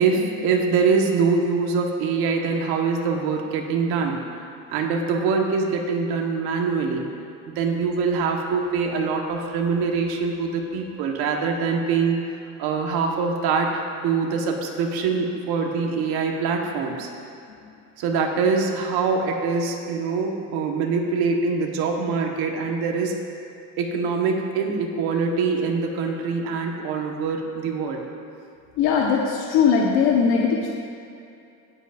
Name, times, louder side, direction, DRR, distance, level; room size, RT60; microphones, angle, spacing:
voice 1, 0.0-4.2 4.7-7.1 7.5-12.2 12.6-17.1 18.0-23.1 23.8-28.0, right 5 dB, 80° right, 1 dB, 1.6 m, -24 dB
voice 2, 28.8-30.7, left 6 dB, 85° left, -3 dB, 1.4 m, -20 dB
19.5 x 8.2 x 2.7 m, 2.6 s
cardioid pair, 140°, 37 cm